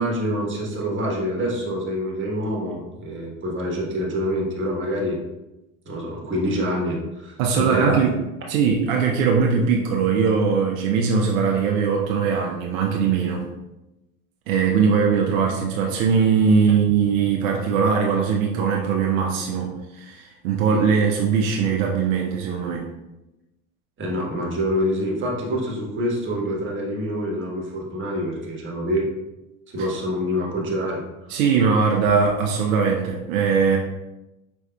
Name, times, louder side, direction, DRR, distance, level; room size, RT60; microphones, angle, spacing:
voice 1, 0.0-5.2 5.8-8.1 24.0-29.1 29.7-31.0 31.3-31.4, equal, 30° right, -2 dB, 1.3 m, -26 dB
voice 2, 7.4-8.1 8.5-13.5 14.5-22.9 31.3-33.8, right 6 dB, 75° right, 0 dB, 0.7 m, -20 dB
5.1 x 3.5 x 2.2 m, 0.98 s
hypercardioid pair, 80°, 41 cm